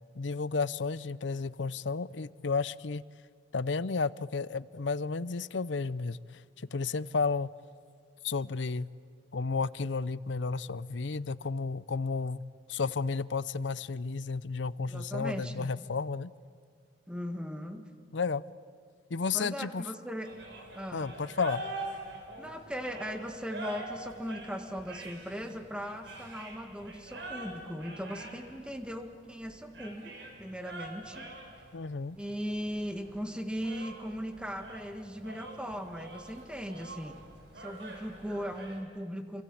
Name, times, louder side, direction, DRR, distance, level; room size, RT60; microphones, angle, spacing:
voice 1, 0.0-3.0 3.5-6.2 6.7-7.5 8.2-8.9 9.3-12.4 12.7-16.3 18.1-18.4 19.1-19.8 20.9-21.6 31.7-32.2, left 4 dB, 75° left, 18 dB, 0.6 m, -32 dB
voice 2, 14.9-15.7 17.1-17.9 19.3-20.3 20.7-21.1 22.4-31.3 32.2-37.2 37.5-39.4, equal, 5° right, 6 dB, 1.7 m, -38 dB
sound 1, 20.2-38.8, right 2 dB, 70° right, 5.1 m, -45 dB
28.0 x 25.0 x 8.7 m, 2.1 s
head